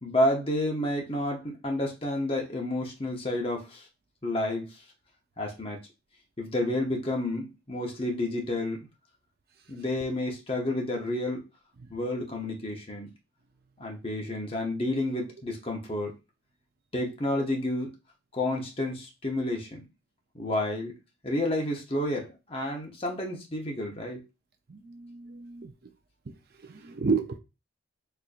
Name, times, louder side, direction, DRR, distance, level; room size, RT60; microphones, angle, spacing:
voice 1, 0.0-3.9 4.2-4.8 5.4-5.8 6.4-8.9 9.7-11.4 11.9-13.1 13.8-16.1 16.9-17.9 18.3-19.8 20.3-21.0 21.2-24.2, left 1 dB, 25° left, 0 dB, 0.8 m, -30 dB
voice 2, 24.7-25.7 26.3-26.4 26.6-27.4, right 4 dB, 45° right, 6 dB, 0.5 m, -31 dB
4.3 x 2.6 x 2.5 m, 0.27 s
head